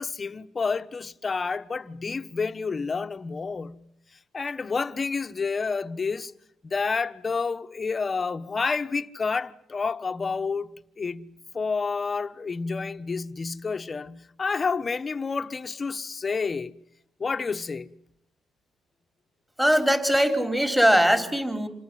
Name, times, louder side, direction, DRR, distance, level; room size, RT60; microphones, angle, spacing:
voice 1, 0.0-3.8 4.3-6.3 6.6-16.7 17.2-17.9, left 4 dB, 35° left, 1.3 m, -29 dB
voice 2, 19.6-21.7, equal, 5° right, 3.9 m, -21 dB
28.0 x 20.0 x 7.7 m
cardioid pair, 90°, 0 cm